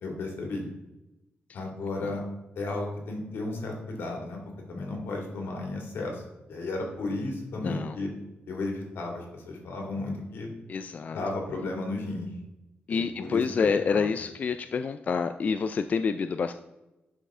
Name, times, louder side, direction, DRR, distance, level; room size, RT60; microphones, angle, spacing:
voice 1, 0.0-0.7 1.5-2.2 2.6-4.4 4.7-6.2 6.5-8.1 8.5-10.5 11.1-12.3 12.9-14.0, left 2 dB, 85° left, 1 dB, 2.4 m, -34 dB
voice 2, 7.5-8.0 10.7-11.2 12.9-16.5, left 5 dB, 45° left, 9 dB, 0.3 m, -28 dB
11.0 x 5.5 x 3.7 m, 0.98 s
wide cardioid pair, 140°, 4 cm